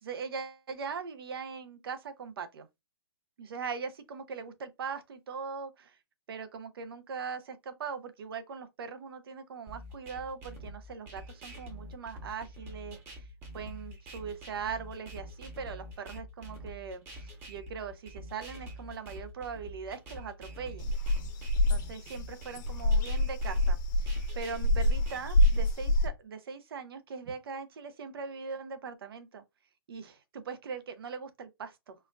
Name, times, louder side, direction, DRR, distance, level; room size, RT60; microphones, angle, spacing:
voice 1, 0.0-2.7 3.4-6.0 6.3-13.2 13.5-17.0 17.5-20.9 21.7-29.4 29.9-31.9, right 5 dB, 65° right, 0.8 m, -40 dB
sound 1, 9.7-25.7, equal, 15° right, 1.0 m, -46 dB
sound 2, 20.8-26.1, left 1 dB, 50° left, 0.9 m, -26 dB
4.2 x 2.5 x 2.4 m
hypercardioid pair, 150°, 13 cm